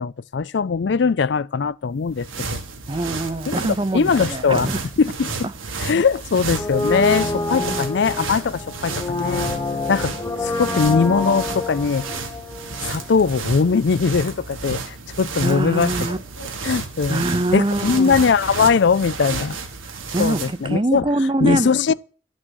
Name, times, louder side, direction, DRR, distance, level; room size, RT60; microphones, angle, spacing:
voice 1, 0.0-2.6 3.5-3.6 3.9-4.7 5.0-5.3 5.8-9.4 9.9-10.1 10.4-12.1 12.9-15.9 16.6-17.2 17.5-19.6 20.2-21.1 21.4-21.9, left 5 dB, 60° left, 0.4 m, -20 dB
sound 1, 1.9-20.7, right 4 dB, 90° right, 2.0 m, -32 dB
voice 2, 2.9-4.8 7.5-7.9 15.4-16.2 17.1-18.2 20.1-21.9, right 2 dB, 25° right, 0.6 m, -24 dB
Brass instrument, 6.5-13.4 13.6-13.7, left 2 dB, 15° left, 1.1 m, -27 dB
Bird, 12.4-17.9, left 1 dB, 75° left, 2.1 m, -49 dB
12.0 x 6.3 x 6.3 m
head